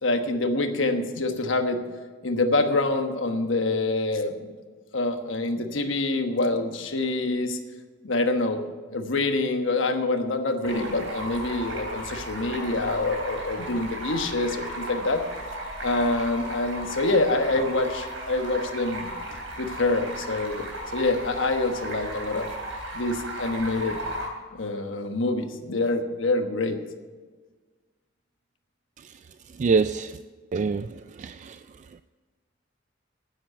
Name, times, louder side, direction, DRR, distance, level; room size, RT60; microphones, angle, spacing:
voice 1, 0.0-1.8 2.2-4.5 4.9-7.6 8.0-8.6 8.9-15.2 15.8-19.1 19.6-22.5 22.9-24.0 24.6-26.8, left 2 dB, 70° left, 6 dB, 1.2 m, -26 dB
Stream, 10.6-24.3, right 1 dB, 85° right, 3.6 m, -35 dB
voice 2, 29.0-30.2 30.5-32.0, right 4 dB, 40° right, 12 dB, 0.3 m, -27 dB
10.0 x 9.3 x 7.8 m, 1.4 s
head